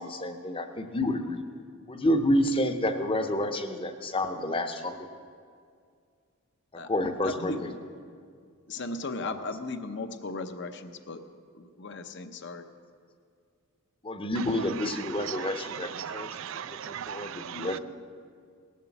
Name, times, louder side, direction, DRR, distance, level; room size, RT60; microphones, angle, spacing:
voice 1, 0.0-1.4 1.9-4.9 6.7-7.7 9.2-9.3 14.0-16.3 16.7-17.8, left 1 dB, 25° left, 8 dB, 0.8 m, -29 dB
voice 2, 7.2-7.8 8.7-11.2 11.5-12.6, left 3 dB, 55° left, 8 dB, 0.7 m, -36 dB
voice 3, 15.1-17.7, right 9 dB, 65° right, 15 dB, 0.4 m, -38 dB
18.5 x 7.4 x 7.2 m, 2.2 s
head